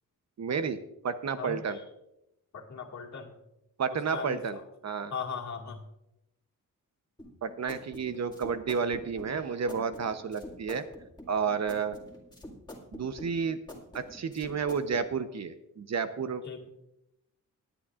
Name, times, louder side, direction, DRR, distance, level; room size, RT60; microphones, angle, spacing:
voice 1, 0.4-0.8 1.0-1.8 3.8-5.1 7.4-10.9 11.3-12.0 12.9-13.6 13.9-16.4, right 6 dB, 55° right, 10 dB, 0.8 m, -31 dB
voice 2, 2.5-3.3 3.9-4.6 5.1-5.8 16.4-16.7, left 6 dB, 55° left, 0 dB, 2.1 m, -38 dB
sound 1, 7.2-15.1, left 1 dB, 15° left, 2.1 m, -46 dB
19.0 x 10.0 x 2.5 m, 0.86 s
wide cardioid pair, 120°, 33 cm